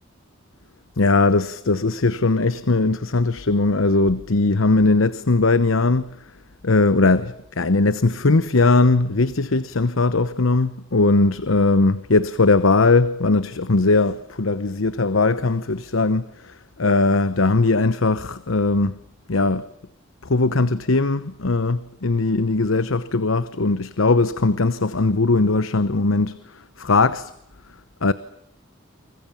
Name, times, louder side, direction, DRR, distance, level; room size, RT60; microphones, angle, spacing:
voice 1, 1.0-6.1 6.6-19.0 19.3-19.7 20.2-27.3 28.0-28.1, left 3 dB, 85° left, 1.0 m, -19 dB
29.5 x 25.0 x 7.2 m
head